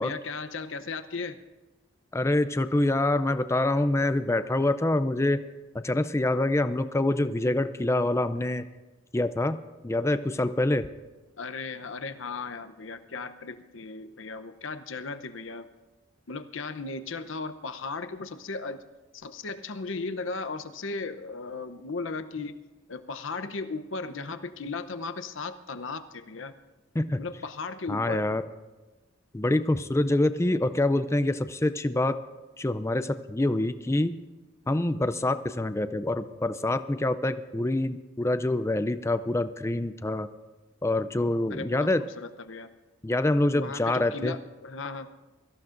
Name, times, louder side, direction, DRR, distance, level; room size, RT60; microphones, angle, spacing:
voice 1, 0.0-1.4 11.4-15.7 16.3-18.8 19.1-22.6 22.9-26.5 27.2-28.2 41.5-41.9 42.2-42.7 43.5-45.1, left 4 dB, 75° left, 9 dB, 0.8 m, -36 dB
voice 2, 2.1-5.4 5.7-8.6 9.1-10.9 26.9-27.2 27.9-28.4 29.3-32.2 32.6-34.2 34.7-40.3 40.8-42.0 43.0-44.4, left 2 dB, 15° left, 12 dB, 0.4 m, -26 dB
23.5 x 14.5 x 2.6 m, 1.2 s
head